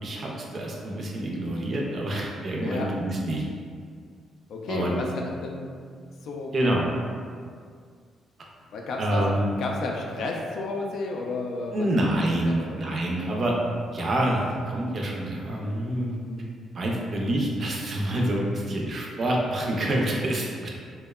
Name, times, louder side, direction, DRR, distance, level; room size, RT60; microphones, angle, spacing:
voice 1, 0.0-3.4 4.7-5.0 6.5-6.9 9.0-9.5 11.7-13.5 13.9-16.1 16.7-20.7, right 1 dB, 45° right, -2 dB, 0.4 m, -27 dB
voice 2, 4.5-5.7 6.2-6.5 8.7-9.3 9.6-11.9 12.4-12.9 13.2-13.3 16.2-16.5, left 3 dB, 70° left, 0 dB, 0.3 m, -32 dB
2.8 x 2.1 x 2.2 m, 2.1 s
cardioid pair, 90°, 0 cm